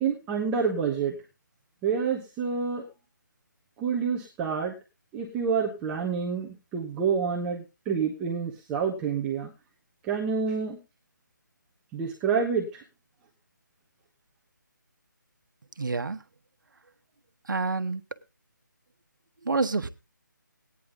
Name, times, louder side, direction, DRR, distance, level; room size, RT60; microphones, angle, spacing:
voice 1, 0.0-1.1 1.8-2.8 3.8-4.7 5.1-9.5 10.0-10.8 11.9-12.8, right 6 dB, 10° right, 0.7 m, -28 dB
voice 2, 15.8-16.2 17.5-18.0 19.5-19.9, right 3 dB, 80° right, 1.0 m, -27 dB
15.0 x 9.7 x 3.7 m
hypercardioid pair, 170°, 11 cm